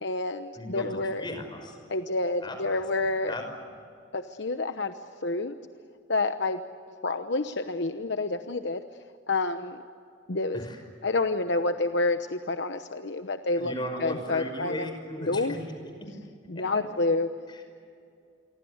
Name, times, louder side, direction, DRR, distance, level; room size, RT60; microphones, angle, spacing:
voice 1, 0.0-1.2 1.9-3.3 4.1-4.9 5.2-5.6 6.1-6.6 7.0-8.8 9.3-9.8 10.3-10.6 11.0-14.9 15.3-15.5 16.5-17.3, left 2 dB, 60° left, 8 dB, 1.0 m, -28 dB
voice 2, 0.6-0.9 1.2-1.8 2.4-2.6 3.3-3.4 10.5-10.8 13.6-15.6 16.6-16.7 17.5-17.6, left 1 dB, 25° left, 5 dB, 5.5 m, -36 dB
27.5 x 24.5 x 8.0 m, 2.4 s
head